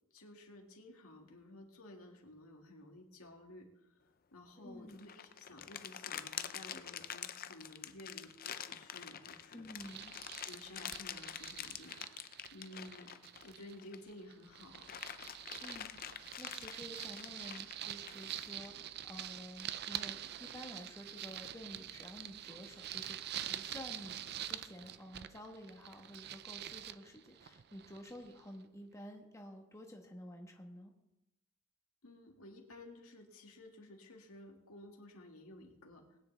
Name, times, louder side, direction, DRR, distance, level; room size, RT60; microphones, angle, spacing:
voice 1, 0.1-9.6 10.3-12.0 12.5-14.9 32.0-36.2, left 1 dB, 80° left, 1 dB, 2.2 m, -54 dB
voice 2, 4.6-5.0 9.5-10.2 15.6-23.2 23.5-30.9, equal, 15° left, 1 dB, 1.2 m, -51 dB
sound 1, 4.9-14.1 14.5-18.7, left 9 dB, 45° left, 0.6 m, -46 dB
sound 2, 9.8-13.8 14.1-28.5, right 11 dB, 50° right, 0.5 m, -46 dB
20.0 x 9.8 x 3.4 m, 0.91 s
head